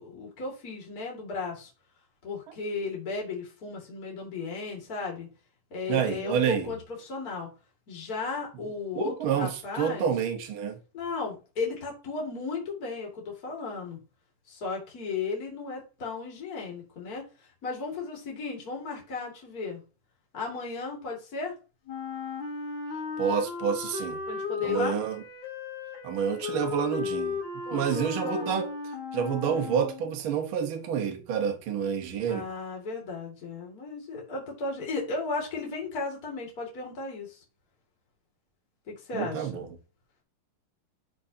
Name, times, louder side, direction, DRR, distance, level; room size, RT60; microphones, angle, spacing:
voice 1, 0.0-1.7 2.2-5.3 5.7-7.5 7.9-10.1 10.9-14.0 14.5-17.2 17.6-19.8 20.3-21.5 24.3-25.0 27.7-28.6 32.3-37.4 38.9-39.6, left 4 dB, 30° left, 2.2 m, -35 dB
voice 2, 5.9-6.7 8.9-10.8 23.2-24.2 24.6-25.2 26.0-27.4 27.7-28.7 29.1-32.5 39.1-39.7, right 7 dB, 70° right, 1.2 m, -28 dB
Wind instrument woodwind instrument, 21.9-30.2, left 5 dB, 65° left, 2.5 m, -35 dB
11.5 x 4.0 x 2.8 m
omnidirectional pair, 3.9 m